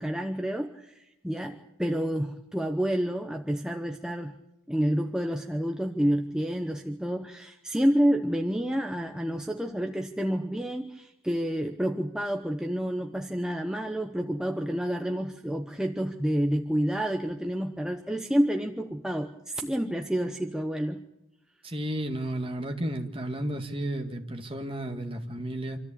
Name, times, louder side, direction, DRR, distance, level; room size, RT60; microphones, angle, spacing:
voice 1, 0.0-4.4 4.7-21.0, equal, 5° right, 3 dB, 0.8 m, -29 dB
voice 2, 21.6-25.8, right 1 dB, 25° right, 4 dB, 1.9 m, -33 dB
26.5 x 13.5 x 8.6 m, 0.89 s
head